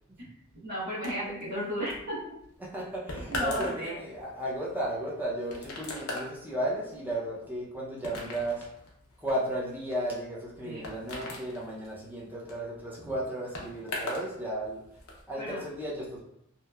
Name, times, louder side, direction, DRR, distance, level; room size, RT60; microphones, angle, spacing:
voice 1, 0.6-2.2 3.3-4.0 10.6-10.9 15.4-15.6, equal, 50° right, -13 dB, 0.9 m, -34 dB
sound 1, 1.0-14.3 14.6-15.2, left 1 dB, 70° left, 0.6 m, -40 dB
voice 2, 2.6-8.6 9.2-14.8 15.3-16.2, right 1 dB, 10° right, -5 dB, 0.5 m, -34 dB
2.9 x 2.0 x 2.2 m, 0.75 s
head